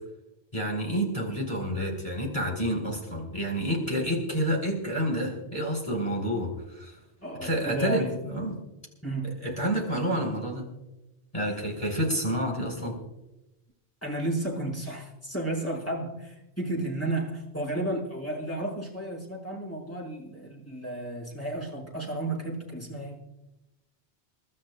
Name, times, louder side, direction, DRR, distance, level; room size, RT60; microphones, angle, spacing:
voice 1, 0.5-7.0 7.4-8.6 9.4-10.7 11.3-12.9, equal, 30° left, 0 dB, 4.3 m, -29 dB
voice 2, 7.2-8.1 9.0-9.4 14.0-23.3, right 1 dB, 10° left, -4 dB, 5.3 m, -33 dB
30.0 x 13.0 x 2.3 m, 0.94 s
omnidirectional pair, 1.1 m